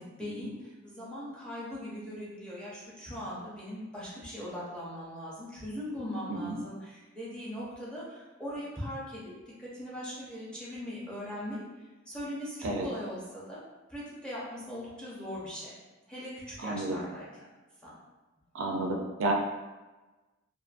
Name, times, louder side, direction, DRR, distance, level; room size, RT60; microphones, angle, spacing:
voice 1, 0.0-9.2 9.6-11.6 12.1-13.6 13.9-15.7 16.1-16.3 16.6-17.3 17.8-17.9, equal, 5° left, -8 dB, 0.6 m, -40 dB
voice 2, 16.6-17.0 18.5-19.3, right 2 dB, 65° right, 1 dB, 0.3 m, -32 dB
2.5 x 2.4 x 2.4 m, 1.2 s
head